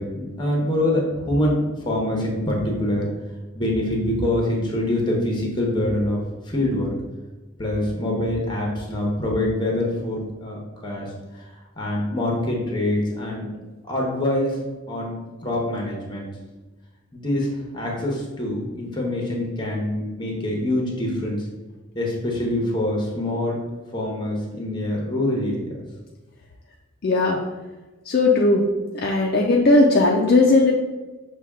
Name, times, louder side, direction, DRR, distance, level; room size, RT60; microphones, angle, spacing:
voice 1, 0.0-3.1 3.5-6.2 6.5-7.0 7.6-11.1 11.4-11.5 11.8-13.4 13.8-14.6 14.9-15.1 15.4-16.3 17.1-21.4 21.9-23.6 23.9-25.6, left 1 dB, 20° left, -1 dB, 0.9 m, -25 dB
voice 2, 27.0-27.4 28.1-28.6 29.0-30.7, left 2 dB, 50° left, -1 dB, 0.4 m, -17 dB
5.9 x 2.3 x 3.5 m, 1.2 s
head